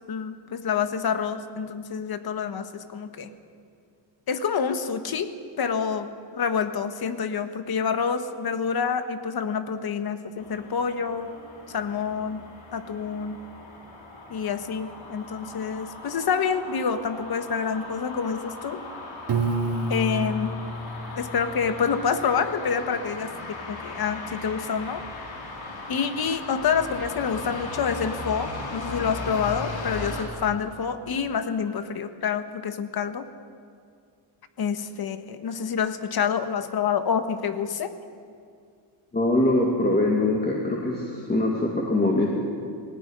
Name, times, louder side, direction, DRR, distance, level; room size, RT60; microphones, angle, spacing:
voice 1, 0.1-3.3 4.3-5.3 5.6-11.3 11.7-12.4 12.7-13.4 14.3-18.8 19.9-20.5 21.2-25.0 25.9-33.3 34.6-37.9, left 6 dB, 50° left, 9 dB, 1.5 m, -27 dB
sound 1, 10.4-30.2, left 2 dB, 75° left, 4.7 m, -38 dB
Piano, 19.3-22.2, right 2 dB, 60° right, 2.6 m, -29 dB
voice 2, 39.1-42.3, left 2 dB, 20° left, -2 dB, 2.4 m, -23 dB
20.0 x 17.0 x 10.0 m, 2.3 s
cardioid pair, 140°, 46 cm